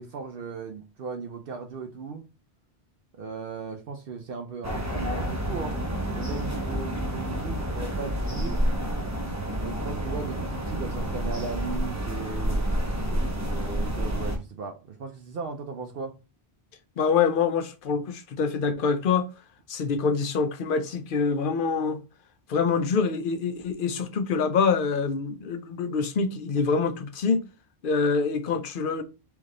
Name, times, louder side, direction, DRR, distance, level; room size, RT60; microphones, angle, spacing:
voice 1, 0.0-2.3 3.2-5.8 6.1-8.6 9.6-12.7 13.4-16.2, right 5 dB, 65° right, 0.8 m, -37 dB
sound 1, 4.6-14.4, right 1 dB, 20° right, 0.7 m, -29 dB
voice 2, 17.0-19.3 19.7-22.0 22.5-27.4 27.8-29.0, left 5 dB, 60° left, 0.8 m, -25 dB
3.5 x 3.1 x 3.8 m
omnidirectional pair, 1.1 m